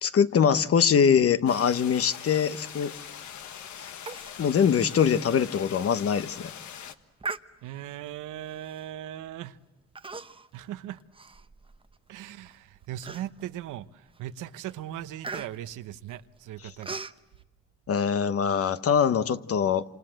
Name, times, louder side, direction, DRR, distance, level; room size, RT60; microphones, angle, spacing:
voice 1, 0.0-2.9 3.8-3.9 4.4-6.5 17.9-19.8, left 7 dB, 50° left, 1.1 m, -23 dB
sound 1, 1.5-6.9, left 8 dB, 70° left, 1.5 m, -42 dB
Human voice, 4.1-4.4 4.7-4.8 5.3-5.4 6.0-6.2 7.2-7.9 8.7-8.9 9.9-10.6 10.9-12.0 12.4-12.5 13.0-13.6 14.1-14.3 14.6-17.2, right 4 dB, 20° right, 0.9 m, -39 dB
voice 2, 7.6-9.6 10.5-11.0 12.1-17.0, right 12 dB, 90° right, 1.0 m, -39 dB
27.5 x 27.0 x 7.7 m
cardioid pair, 90°, 30 cm